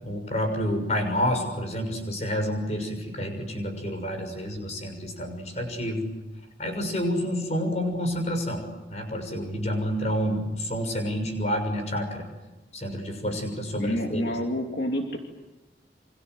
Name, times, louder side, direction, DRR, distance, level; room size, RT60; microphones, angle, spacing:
voice 1, 0.0-6.1 6.6-12.3 12.7-14.4, equal, 40° left, 5 dB, 6.4 m, -29 dB
voice 2, 13.8-15.2, equal, 60° left, 2 dB, 2.6 m, -28 dB
28.5 x 26.0 x 7.9 m, 1.2 s
head